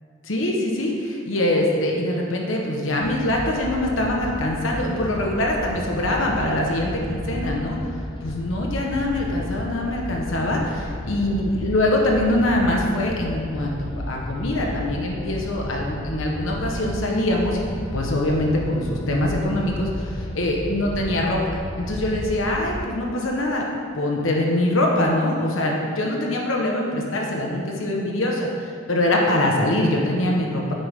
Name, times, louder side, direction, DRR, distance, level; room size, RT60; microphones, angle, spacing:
voice 1, 0.2-7.8 8.2-17.7 17.9-23.6 23.9-28.5 28.9-30.7, left 1 dB, 85° left, -1 dB, 1.2 m, -23 dB
sound 1, 3.0-22.9, left 1 dB, 25° left, 0.4 m, -33 dB
9.7 x 9.6 x 3.7 m, 2.5 s
head